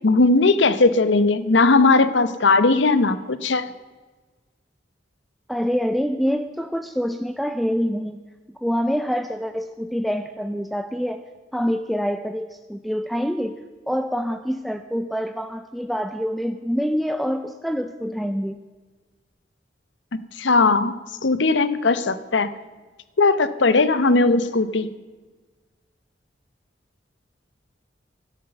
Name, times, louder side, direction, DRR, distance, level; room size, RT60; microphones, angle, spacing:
voice 1, 0.0-3.7 20.1-21.0 21.2-22.5 23.2-24.9, left 3 dB, 80° left, 14 dB, 0.8 m, -18 dB
voice 2, 5.5-8.2 8.6-11.2 11.5-13.6 13.9-18.6, equal, ahead, 8 dB, 0.4 m, -26 dB
12.0 x 12.0 x 6.7 m, 1.3 s
head